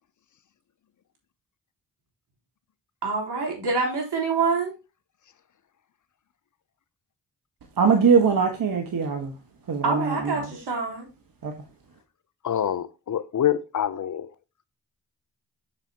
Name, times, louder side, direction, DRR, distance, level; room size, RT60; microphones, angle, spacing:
voice 1, 3.0-4.7 9.8-11.1, right 4 dB, 70° right, 3.6 m, -26 dB
voice 2, 7.8-9.3 9.7-10.5 11.4-11.5, right 6 dB, 50° right, 1.4 m, -22 dB
voice 3, 12.4-14.3, left 10 dB, 45° left, 0.6 m, -26 dB
6.9 x 6.7 x 2.9 m
supercardioid pair, 40°, 42 cm